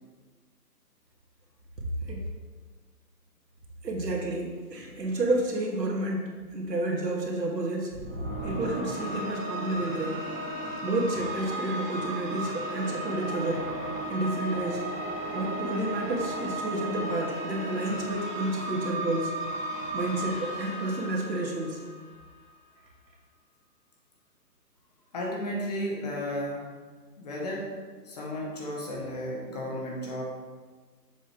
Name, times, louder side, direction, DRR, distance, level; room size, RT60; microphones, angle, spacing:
voice 1, 3.8-7.9 8.4-10.2 10.8-13.7 14.1-14.8 15.3-19.3 19.9-21.8, right 1 dB, 85° right, -1 dB, 1.8 m, -30 dB
sound 1, 7.9-22.3, right 1 dB, 30° right, 1.3 m, -35 dB
voice 2, 25.1-26.7 27.2-27.8 28.0-30.2, equal, 25° left, -2 dB, 0.9 m, -33 dB
7.1 x 3.9 x 4.3 m, 1.4 s
hypercardioid pair, 150°, 48 cm